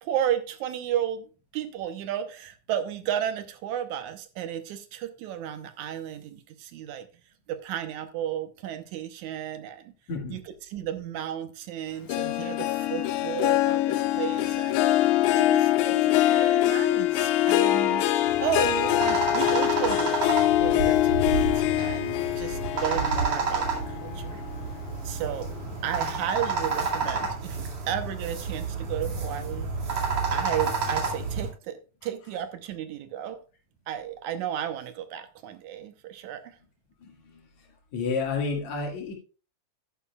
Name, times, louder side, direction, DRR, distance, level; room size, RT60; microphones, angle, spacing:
voice 1, 0.0-7.1 7.5-9.9 10.3-10.4 10.7-14.8 15.3-18.1 18.4-24.4 25.0-25.5 25.8-30.0 30.3-33.4 33.9-36.6, right 10 dB, 80° right, 9 dB, 2.3 m, -33 dB
voice 2, 10.1-10.4 37.0-37.1 37.9-39.1, left 4 dB, 70° left, 1 dB, 3.3 m, -30 dB
Harp, 12.1-24.8 25.2-25.6 26.1-26.2, left 14 dB, 85° left, 2.1 m, -24 dB
sound 1, 18.3-31.5, right 4 dB, 60° right, 3.3 m, -30 dB
11.5 x 10.0 x 2.3 m, 0.34 s
omnidirectional pair, 3.4 m